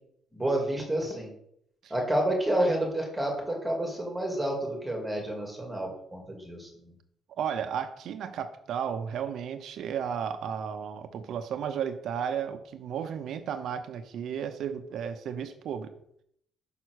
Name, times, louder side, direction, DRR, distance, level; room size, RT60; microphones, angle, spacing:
voice 1, 0.3-1.3 1.9-6.9, right 1 dB, 5° right, 0 dB, 2.3 m, -29 dB
voice 2, 7.4-15.9, right 8 dB, 65° right, 9 dB, 0.8 m, -33 dB
5.9 x 5.8 x 6.4 m, 0.71 s
cardioid pair, 145°, 0 cm